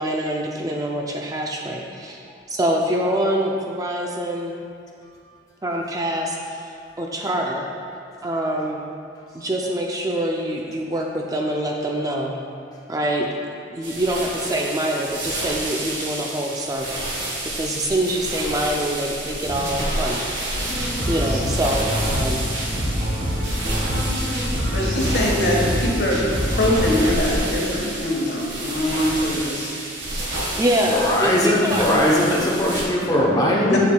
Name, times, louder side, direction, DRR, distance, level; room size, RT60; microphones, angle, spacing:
voice 1, 0.0-2.2 2.5-4.5 5.6-6.6 7.0-7.7 8.2-8.8 9.3-12.3 12.9-13.3 13.7-17.0 17.5-20.3 21.1-22.5 30.6-31.9, right 1 dB, 20° right, 0 dB, 0.4 m, -25 dB
sound 1, 13.8-32.8, right 1 dB, 85° right, 1.6 m, -30 dB
sound 2, 20.5-27.1, equal, 65° right, 1.4 m, -25 dB
voice 2, 24.7-26.2 26.6-29.8 31.8-32.1 33.6-33.8, left 1 dB, 60° left, -3 dB, 1.3 m, -23 dB
voice 3, 30.9-33.8, left 1 dB, 20° left, -5 dB, 0.7 m, -20 dB
7.6 x 7.1 x 2.3 m, 2.4 s
head